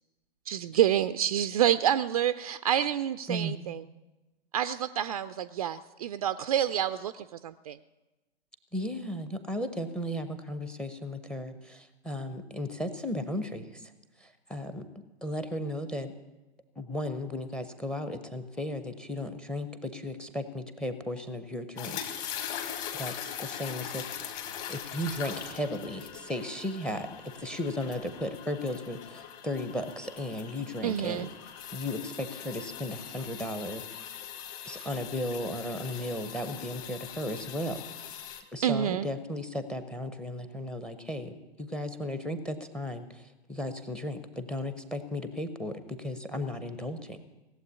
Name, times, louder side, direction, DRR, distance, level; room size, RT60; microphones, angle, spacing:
voice 1, 0.5-3.8 4.5-7.8 30.8-31.3 34.7-34.9 38.6-39.1, right 10 dB, 35° right, 12 dB, 0.4 m, -28 dB
voice 2, 8.7-13.9 14.2-14.8 15.2-16.1 16.8-24.4 24.7-27.1 27.4-31.3 31.7-33.8 34.7-37.8 38.5-47.2, left 1 dB, 5° left, 10 dB, 0.7 m, -35 dB
sound 1, 21.8-38.4, left 9 dB, 35° left, 1.9 m, -41 dB
17.5 x 7.8 x 9.6 m, 1.1 s
figure-of-eight pair, 120°, 32 cm